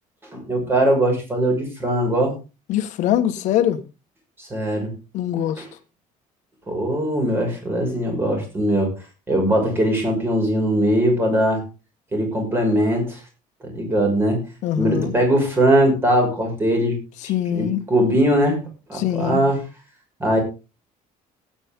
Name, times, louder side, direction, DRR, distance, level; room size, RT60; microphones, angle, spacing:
voice 1, 0.3-2.4 4.4-4.9 5.6-5.7 6.7-8.9 9.3-11.6 12.1-13.2 13.6-14.4 14.8-17.0 17.2-18.6 18.9-19.6 20.2-20.4, right 1 dB, 15° right, 6.0 m, -20 dB
voice 2, 2.7-3.8 5.1-5.6 14.6-15.1 17.2-17.8 18.9-19.4, left 11 dB, 65° left, 1.6 m, -22 dB
18.0 x 9.1 x 3.7 m
cardioid pair, 170°, 14 cm